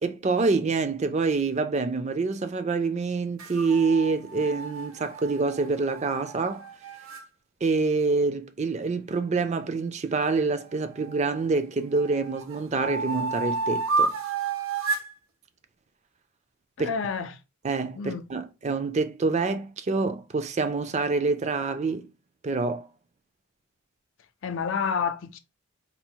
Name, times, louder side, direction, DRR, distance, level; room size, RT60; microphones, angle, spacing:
voice 1, 0.0-6.7 7.6-14.1 16.8-16.9 17.6-22.1 22.4-22.9, right 4 dB, 30° right, 0.4 m, -26 dB
sound 1, 3.4-7.2 10.2-11.4 11.9-15.1, right 4 dB, 70° right, 0.8 m, -31 dB
voice 2, 16.8-17.4 18.0-18.2 24.4-25.4, left 6 dB, 60° left, 0.4 m, -29 dB
4.1 x 2.0 x 4.4 m
head